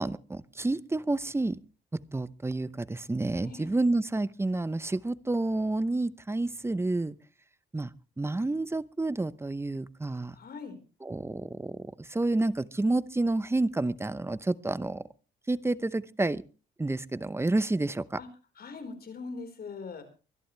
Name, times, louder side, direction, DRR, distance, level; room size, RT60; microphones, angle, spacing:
voice 1, 0.0-1.6 2.1-7.1 7.7-7.9 8.2-10.3 11.1-15.0 15.5-16.4 16.8-18.0, right 2 dB, 10° right, 16 dB, 0.8 m, -29 dB
voice 2, 3.4-3.7 10.3-10.8 18.2-18.3 18.5-20.0, left 4 dB, 50° left, 7 dB, 4.6 m, -41 dB
24.5 x 11.0 x 3.3 m, 0.35 s
cardioid pair, 90°, 20 cm